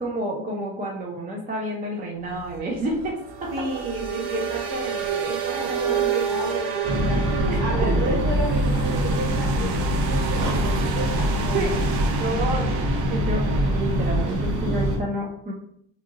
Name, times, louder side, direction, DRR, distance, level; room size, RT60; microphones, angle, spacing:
voice 1, 0.0-3.7 5.5-6.4 7.5-8.2 11.5-11.8 12.2-15.5, right 1 dB, 20° right, -1 dB, 0.4 m, -30 dB
sound 1, 2.3-14.7, right 6 dB, 80° right, 0.7 m, -30 dB
voice 2, 3.5-12.1, right 2 dB, 45° right, -2 dB, 1.4 m, -32 dB
sound 2, 6.8-15.0, equal, 65° right, 1.3 m, -24 dB
2.8 x 2.6 x 2.4 m, 0.69 s
supercardioid pair, 80°, 49 cm